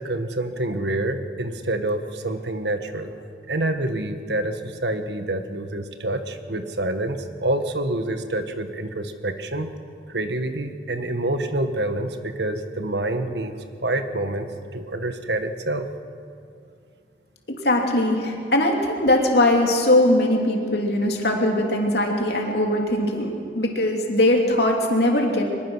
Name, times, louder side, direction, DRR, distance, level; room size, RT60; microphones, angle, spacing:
voice 1, 0.0-3.1 3.5-9.7 10.1-13.5 13.8-14.5 14.7-15.9, right 1 dB, 75° right, 7 dB, 1.5 m, -27 dB
voice 2, 17.5-25.5, left 1 dB, 70° left, 1 dB, 2.9 m, -21 dB
24.0 x 21.0 x 6.4 m, 2.3 s
head